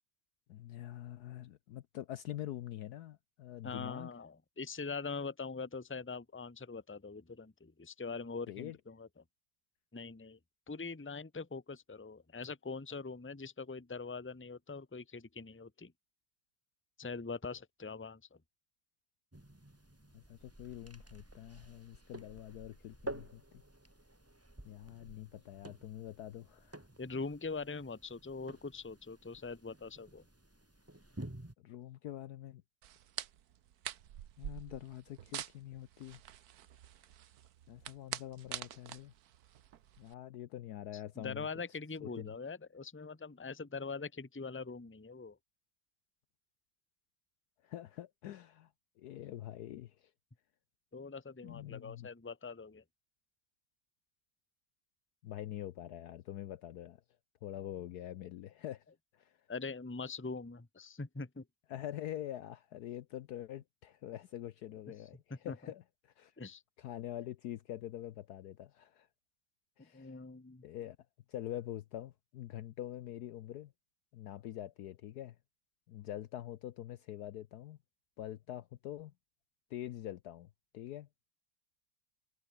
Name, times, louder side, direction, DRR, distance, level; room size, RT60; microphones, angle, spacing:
voice 1, 0.5-4.1 8.5-8.8 20.1-23.4 24.6-26.8 31.6-32.6 34.4-36.2 37.7-39.1 40.0-41.5 42.0-42.3 47.6-48.7 49.0-50.1 51.4-52.1 55.2-57.0 57.4-58.8 59.1-59.4 61.7-66.3 66.8-69.1 69.8-70.1 70.6-71.0 71.3-73.7 74.1-75.4 75.9-77.8 78.2-79.1 79.7-81.1, left 12 dB, 70° left, 1.1 m, -45 dB
voice 2, 3.6-9.2 9.9-10.4 10.7-15.9 17.0-18.2 27.0-30.2 41.2-45.4 50.9-52.8 59.5-61.4 65.3-65.6 66.4-66.6 69.8-70.6, left 4 dB, 10° left, 0.9 m, -43 dB
sound 1, 19.3-31.5, right 1 dB, 10° right, 1.7 m, -51 dB
sound 2, 32.8-40.1, right 11 dB, 60° right, 1.3 m, -46 dB
omnidirectional pair, 2.0 m